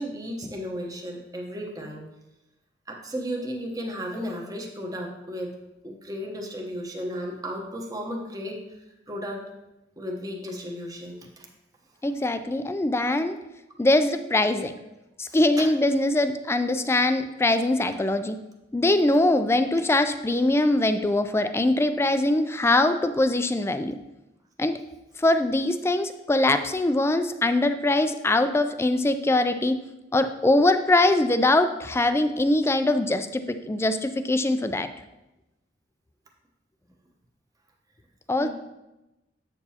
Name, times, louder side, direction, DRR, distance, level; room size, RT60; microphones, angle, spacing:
voice 1, 0.0-2.0 2.9-5.5 5.8-8.6 9.1-9.4 10.0-11.5 15.3-15.7 38.4-38.5, equal, 20° right, 0 dB, 0.9 m, -34 dB
voice 2, 12.0-13.4 13.8-14.7 15.2-18.4 18.7-24.0 24.6-24.7 25.2-29.8 30.1-34.9 38.3-38.5, left 2 dB, 15° left, 10 dB, 0.3 m, -22 dB
8.0 x 6.7 x 2.8 m, 0.97 s
head